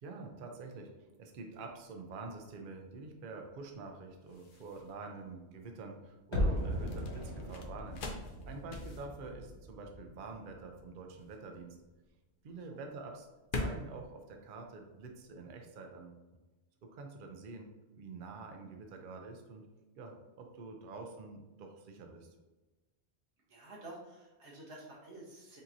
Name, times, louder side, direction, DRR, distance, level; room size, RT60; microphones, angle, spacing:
voice 1, 0.0-8.0 8.5-11.8 12.4-13.3 13.5-16.2 16.8-17.7 17.9-19.7 20.0-22.3, right 3 dB, 55° right, 3 dB, 0.7 m, -47 dB
sound 1, 2.0-15.4, left 2 dB, 55° left, 0.7 m, -46 dB
sound 2, 6.3-11.3 11.5-11.6, left 1 dB, 25° left, 1.4 m, -38 dB
voice 2, 23.5-25.6, right 2 dB, 90° right, -3 dB, 1.4 m, -51 dB
5.3 x 2.9 x 2.6 m, 1.1 s
omnidirectional pair, 1.1 m